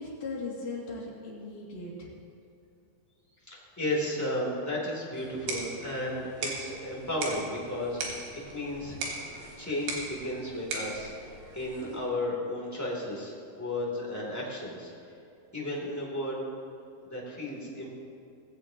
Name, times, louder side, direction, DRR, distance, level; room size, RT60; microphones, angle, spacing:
voice 1, 0.0-2.1, left 3 dB, 55° left, -4 dB, 3.7 m, -38 dB
voice 2, 3.5-9.0 9.6-11.1 11.5-14.9 15.5-16.4 17.0-17.9, left 1 dB, 5° left, -4 dB, 2.3 m, -34 dB
sound 1, 5.2-12.1, right 3 dB, 90° right, 4.0 m, -39 dB
19.5 x 15.5 x 2.9 m, 2.6 s
omnidirectional pair, 4.5 m